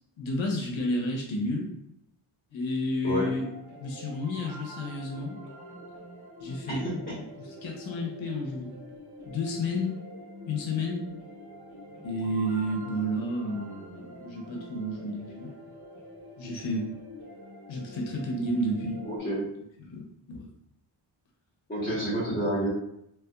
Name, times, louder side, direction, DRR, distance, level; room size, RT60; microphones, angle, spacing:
voice 1, 0.2-1.7 2.5-3.4 3.8-5.4 6.4-6.8 7.6-8.8 9.2-9.9 10.5-11.0 12.0-15.5 16.4-16.8 17.7-19.0 19.8-20.0 20.3-20.4, left 1 dB, 80° left, 0 dB, 1.0 m, -31 dB
sound 1, 3.2-19.2, equal, 55° right, 1.2 m, -46 dB
voice 2, 19.0-19.5 21.7-22.7, equal, 20° left, -7 dB, 1.4 m, -29 dB
3.4 x 3.2 x 2.4 m, 0.76 s
cardioid pair, 105°, 46 cm